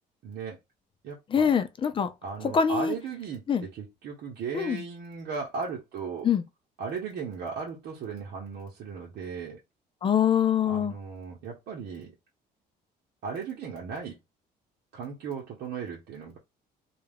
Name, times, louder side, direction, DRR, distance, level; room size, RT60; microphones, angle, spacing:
voice 1, 0.2-0.6 1.0-1.5 2.2-6.3 6.8-9.6 10.6-12.1 13.2-14.2 14.9-16.4, right 5 dB, 70° right, 0.8 m, -36 dB
voice 2, 1.3-2.1 2.5-2.9 3.5-3.6 4.5-4.8 6.2-6.4 10.0-10.9, left 7 dB, 30° left, 0.4 m, -24 dB
2.3 x 2.2 x 3.3 m
cardioid pair, 110°, 17 cm